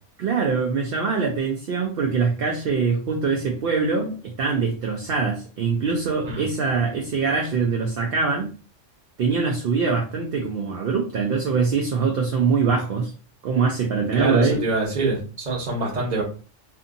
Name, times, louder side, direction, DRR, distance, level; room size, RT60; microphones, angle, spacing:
voice 1, 0.2-8.5 9.2-13.1 13.4-14.6, right 5 dB, 60° right, 2 dB, 0.7 m, -23 dB
voice 2, 14.1-16.2, right 2 dB, 40° right, -2 dB, 1.0 m, -25 dB
2.6 x 2.6 x 2.5 m, 0.36 s
omnidirectional pair, 1.2 m